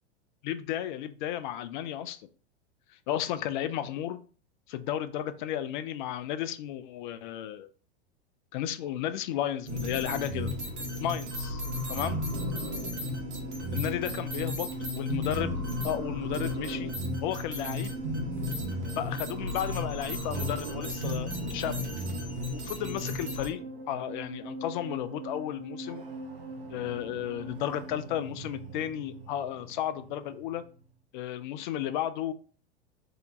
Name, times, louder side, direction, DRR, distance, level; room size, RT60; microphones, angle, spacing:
voice 1, 0.4-2.2 3.1-4.2 4.7-7.7 8.5-10.5 11.0-11.6 11.9-12.2 13.7-14.7 14.9-15.6 15.8-18.0 19.0-21.8 22.5-26.0 26.7-30.6 31.1-32.3, left 11 dB, 45° left, 12 dB, 0.4 m, -33 dB
sound 1, 9.7-23.5, left 1 dB, 80° right, 1.1 m, -34 dB
sound 2, 12.5-30.9, right 2 dB, 60° right, 0.8 m, -43 dB
2.8 x 2.2 x 3.7 m, 0.39 s
figure-of-eight pair, 95°, 34 cm